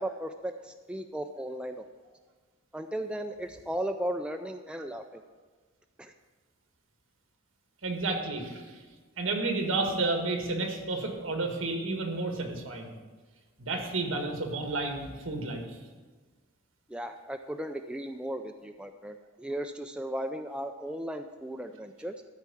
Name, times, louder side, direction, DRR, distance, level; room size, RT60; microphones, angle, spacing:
voice 1, 0.0-1.8 2.7-5.2 6.0-6.1 16.9-22.2, right 1 dB, 5° right, 5 dB, 0.3 m, -36 dB
voice 2, 7.8-8.8 9.2-12.9 13.6-15.6, right 3 dB, 65° right, 3 dB, 1.8 m, -31 dB
13.5 x 4.6 x 8.5 m, 1.4 s
head